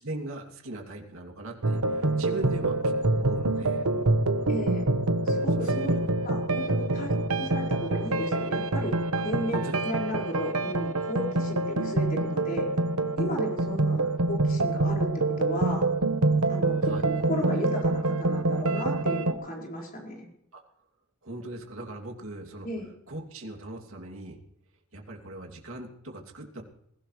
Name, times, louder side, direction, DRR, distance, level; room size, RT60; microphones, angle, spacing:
voice 1, 0.0-3.9 5.5-6.0 7.1-7.2 9.2-9.8 16.8-17.0 20.5-20.6 21.2-22.7 23.1-24.4 24.9-26.6, right 2 dB, 65° right, 1 dB, 2.8 m, -39 dB
sound 1, 1.6-19.3, right 2 dB, 85° right, 1.3 m, -26 dB
voice 2, 4.5-4.9 5.3-6.0 6.2-7.1 7.4-12.7 13.1-15.1 15.4-15.9 16.5-20.3 22.6-22.9, equal, 40° left, -2 dB, 5.3 m, -35 dB
22.5 x 16.0 x 3.3 m, 0.77 s
head